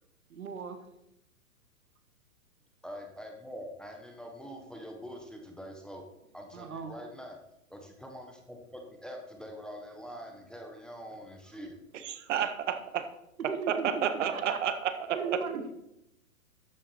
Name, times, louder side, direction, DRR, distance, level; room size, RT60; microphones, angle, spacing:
voice 1, 0.3-0.8 6.5-6.9 13.5-14.6 15.1-15.8, right 5 dB, 75° right, 8 dB, 1.7 m, -37 dB
voice 2, 2.8-6.0 6.3-7.4 7.7-11.8, equal, ahead, 2 dB, 0.9 m, -44 dB
voice 3, 12.0-13.0 13.4-15.6, right 8 dB, 55° right, 9 dB, 1.4 m, -31 dB
12.5 x 7.3 x 4.3 m, 0.84 s
hypercardioid pair, 130°, 42 cm